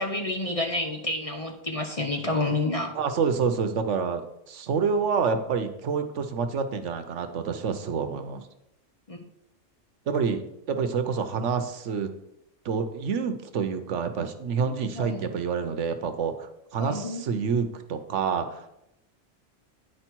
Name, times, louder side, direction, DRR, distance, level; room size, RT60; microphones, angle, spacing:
voice 1, 0.0-2.9 9.1-9.2 15.0-15.2 16.8-17.2, left 2 dB, 35° left, 3 dB, 0.7 m, -29 dB
voice 2, 2.9-8.4 10.1-10.4 10.7-12.1 12.6-18.7, right 5 dB, 75° right, 8 dB, 1.1 m, -28 dB
9.8 x 4.9 x 4.5 m, 0.82 s
omnidirectional pair, 1.3 m